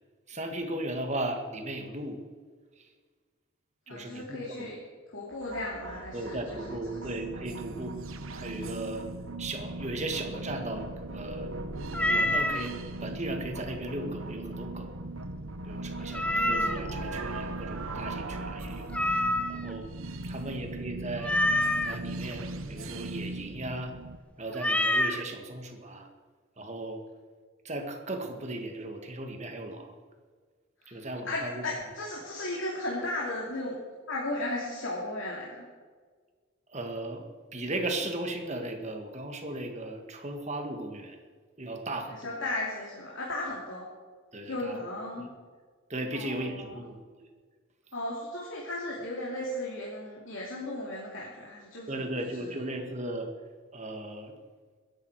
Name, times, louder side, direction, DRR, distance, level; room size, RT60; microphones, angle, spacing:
voice 1, 0.3-2.2 3.9-4.4 6.1-7.9 8.3-9.1 9.4-11.5 11.8-14.9 15.7-18.9 19.2-19.9 20.3-21.4 21.8-23.9 24.4-26.1 26.6-27.0 27.7-29.9 30.9-31.6 36.7-37.2 37.5-41.2 41.6-42.3 44.3-44.7 45.2-45.3 45.9-47.0 51.9-53.3 53.7-54.3, right 1 dB, 35° right, 4 dB, 1.8 m, -36 dB
voice 2, 3.9-4.8 5.1-7.0 16.3-17.1 20.1-20.7 30.8-31.0 31.2-33.7 34.1-35.6 42.1-43.8 44.5-45.3 46.1-46.8 47.9-52.0 52.4-52.6, left 1 dB, 70° left, -5 dB, 2.7 m, -36 dB
sound 1, 5.3-24.2, right 2 dB, 85° right, 1.1 m, -38 dB
Meow, 11.9-12.7 16.1-16.9 18.9-19.7 21.2-22.0 24.6-25.2, left 1 dB, 5° left, 0.6 m, -26 dB
22.0 x 11.0 x 4.8 m, 1.6 s
head